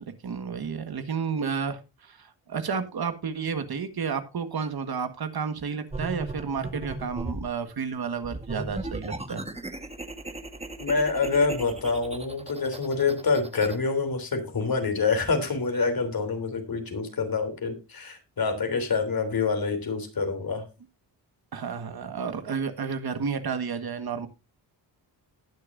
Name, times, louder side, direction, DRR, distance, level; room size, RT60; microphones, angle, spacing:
voice 1, 0.1-9.4 21.5-24.3, right 6 dB, 60° right, 9 dB, 1.7 m, -31 dB
sound 1, 5.9-7.5 8.2-13.8, right 2 dB, 15° right, 1.5 m, -37 dB
voice 2, 10.8-20.6, left 4 dB, 55° left, 6 dB, 3.4 m, -26 dB
19.0 x 6.6 x 2.6 m, 0.27 s
cardioid pair, 65°, 42 cm